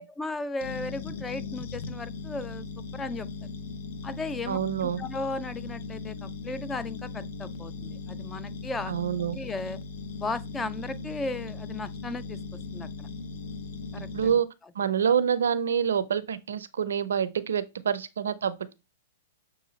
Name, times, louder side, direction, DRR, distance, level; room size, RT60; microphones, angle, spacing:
voice 1, 0.0-3.3 4.0-8.9 9.3-9.8 10.2-12.4 12.7-13.1 13.9-14.4, left 3 dB, 15° left, 0.3 m, -36 dB
sound 1, 0.6-14.3, left 4 dB, 60° left, 0.6 m, -38 dB
voice 2, 4.5-5.0 8.9-9.4 14.1-14.5 14.8-18.7, right 8 dB, 75° right, 0.4 m, -27 dB
6.3 x 2.4 x 3.0 m
hypercardioid pair, 115°, 0 cm